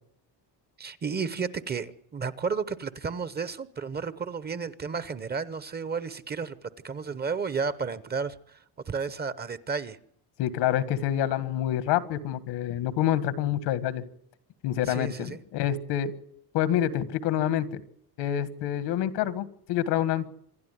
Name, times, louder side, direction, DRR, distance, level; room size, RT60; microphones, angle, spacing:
voice 1, 0.8-6.6 6.8-8.6 8.9-10.0 14.9-15.4, right 5 dB, 25° right, 0.9 m, -32 dB
voice 2, 10.4-14.0 14.6-16.1 16.5-17.8 18.2-20.3, left 11 dB, 85° left, 1.8 m, -27 dB
26.5 x 12.0 x 9.3 m
cardioid pair, 150°, 40 cm